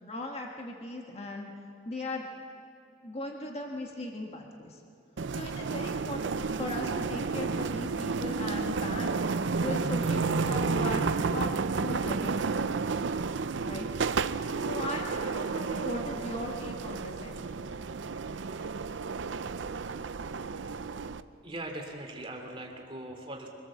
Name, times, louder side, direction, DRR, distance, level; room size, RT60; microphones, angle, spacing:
voice 1, 0.0-1.5 1.8-2.2 3.0-4.8 5.3-11.5 11.8-12.8 13.7-13.9 14.6-17.4, left 1 dB, 35° left, 1 dB, 1.6 m, -38 dB
sound 1, 5.2-21.2, right 4 dB, 75° right, 0.6 m, -31 dB
voice 2, 21.4-23.5, right 1 dB, 30° right, 2 dB, 2.7 m, -40 dB
24.5 x 18.5 x 7.4 m, 2.6 s
head